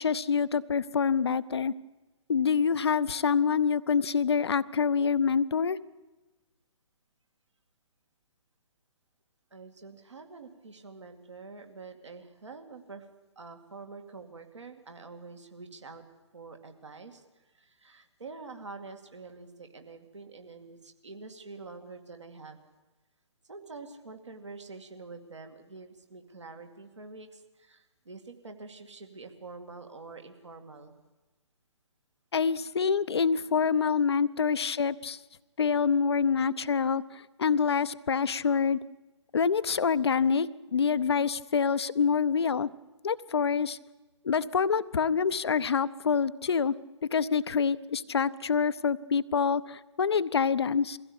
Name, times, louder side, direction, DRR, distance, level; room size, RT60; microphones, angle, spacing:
voice 1, 0.0-1.7 2.3-5.8 32.3-35.2 35.6-37.0 37.4-38.8 39.3-42.7 43.0-43.8 44.2-46.7 47.1-51.0, left 6 dB, 55° left, 15 dB, 0.7 m, -26 dB
voice 2, 9.5-13.1 13.4-16.0 16.3-22.6 23.5-30.9 34.3-34.6 36.4-36.8 40.6-40.7 42.8-43.0, right 4 dB, 70° right, 4 dB, 2.4 m, -47 dB
22.0 x 15.5 x 8.7 m, 1.1 s
figure-of-eight pair, 130°, 16 cm